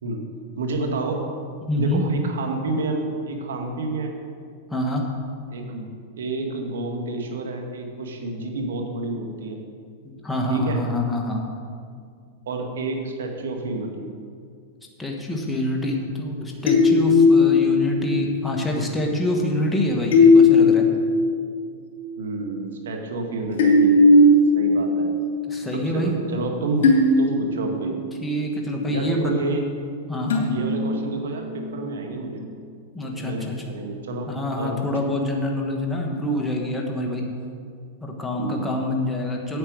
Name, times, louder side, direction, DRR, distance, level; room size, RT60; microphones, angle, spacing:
voice 1, 0.6-1.2 1.7-4.1 5.5-5.9 6.2-9.6 10.5-10.8 12.5-14.0 22.2-24.3 24.5-25.1 25.7-26.9 27.2-27.9 28.9-29.6 30.5-32.4 33.0-34.3 34.6-34.9 38.4-38.7, right 3 dB, 85° right, 3 dB, 2.0 m, -29 dB
voice 2, 1.7-2.0 4.7-5.0 10.0-11.4 15.0-20.8 25.5-26.1 28.2-29.3 30.1-30.5 32.9-33.5 34.3-37.2 38.0-39.6, left 1 dB, 5° left, -1 dB, 1.5 m, -26 dB
sound 1, 16.7-18.3 20.1-21.4 21.9-22.0 23.6-25.2 25.7-25.8 26.8-28.2 30.3-31.6, left 2 dB, 70° left, 2.8 m, -17 dB
8.9 x 8.6 x 6.4 m, 2.2 s
hypercardioid pair, 135°, 0 cm